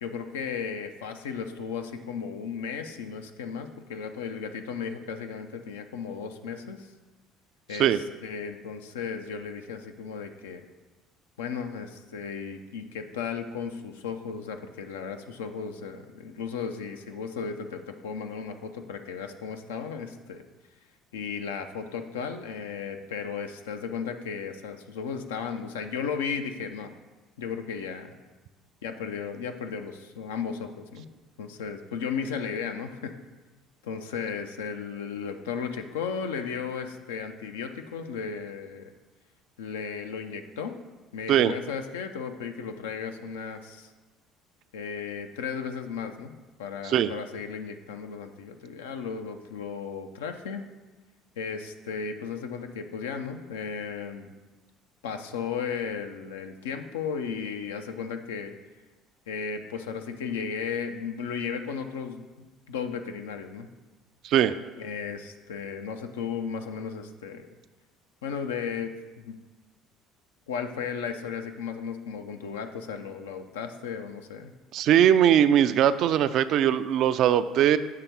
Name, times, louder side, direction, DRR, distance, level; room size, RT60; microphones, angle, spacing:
voice 1, 0.0-6.9 7.7-10.6 11.4-20.4 21.1-27.0 27.4-28.2 28.8-31.1 31.4-33.2 33.8-38.9 39.6-40.8 41.1-43.9 44.7-50.7 51.4-54.3 55.0-58.5 59.3-63.7 64.8-67.6 68.2-69.4 70.5-74.5, left 6 dB, 85° left, 6 dB, 0.5 m, -35 dB
voice 2, 74.7-77.8, right 10 dB, 60° right, 13 dB, 0.3 m, -20 dB
6.7 x 3.4 x 6.0 m, 1.2 s
hypercardioid pair, 65°, 0 cm